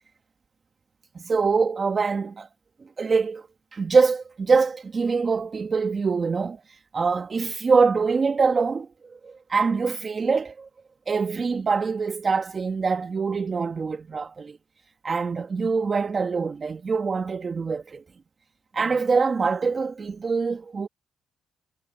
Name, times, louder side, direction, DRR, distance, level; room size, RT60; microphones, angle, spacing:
voice 1, 1.1-2.5 3.0-3.5 3.7-6.6 6.9-8.9 9.2-10.7 11.1-14.6 15.0-18.0 18.7-20.9, right 4 dB, 35° right, 1.5 m, -24 dB
cardioid pair, 90°, 0 cm